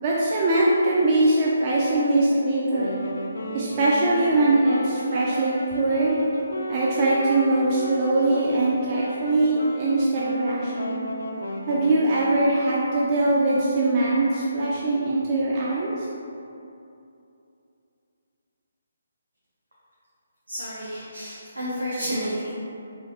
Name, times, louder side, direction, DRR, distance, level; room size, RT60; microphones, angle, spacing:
voice 1, 0.0-3.0 3.5-6.2 6.7-11.0 11.7-16.1, right 2 dB, 30° right, -6 dB, 0.4 m, -22 dB
Wind instrument woodwind instrument, 2.6-12.3, left 1 dB, 65° left, 0.4 m, -34 dB
voice 2, 20.5-22.5, equal, 85° right, -9 dB, 0.8 m, -30 dB
3.7 x 2.9 x 2.8 m, 2.7 s
figure-of-eight pair, 140°, 0 cm